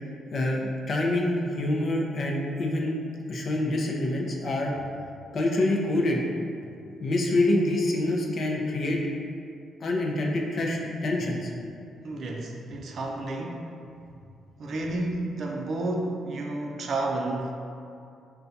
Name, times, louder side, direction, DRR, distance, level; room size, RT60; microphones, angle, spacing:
voice 1, 0.3-3.0 3.3-4.7 5.3-6.2 7.0-9.0 9.8-11.5, left 1 dB, 50° left, -1 dB, 0.5 m, -26 dB
voice 2, 12.0-13.7 14.6-17.5, right 2 dB, 55° right, 0 dB, 0.4 m, -31 dB
5.5 x 2.2 x 2.6 m, 2.5 s
cardioid pair, 100°, 0 cm